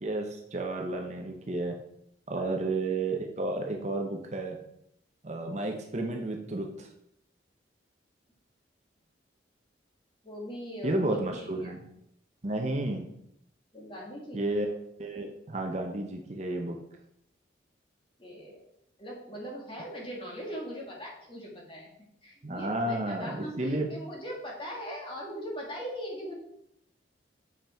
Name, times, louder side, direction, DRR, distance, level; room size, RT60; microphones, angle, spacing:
voice 1, 0.0-1.8 2.3-4.6 5.2-6.9 10.8-11.8 12.4-13.1 14.3-14.7 15.0-16.8 22.4-23.9, right 2 dB, 40° right, 3 dB, 0.8 m, -32 dB
voice 2, 10.2-11.8 13.7-14.5 18.2-18.6 19.0-21.9 22.2-26.3, equal, 30° left, -2 dB, 2.1 m, -40 dB
7.4 x 5.8 x 4.4 m, 0.76 s
head